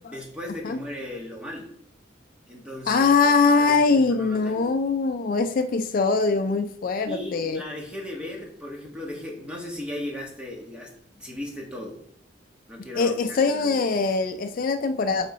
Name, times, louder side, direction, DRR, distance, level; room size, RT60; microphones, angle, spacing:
voice 1, 0.1-1.7 2.5-4.7 7.1-12.0 12.7-13.8, left 1 dB, 5° right, -1 dB, 1.5 m, -37 dB
voice 2, 2.9-7.6 12.8-15.3, left 4 dB, 50° left, 9 dB, 0.4 m, -22 dB
7.7 x 3.9 x 3.9 m, 0.66 s
head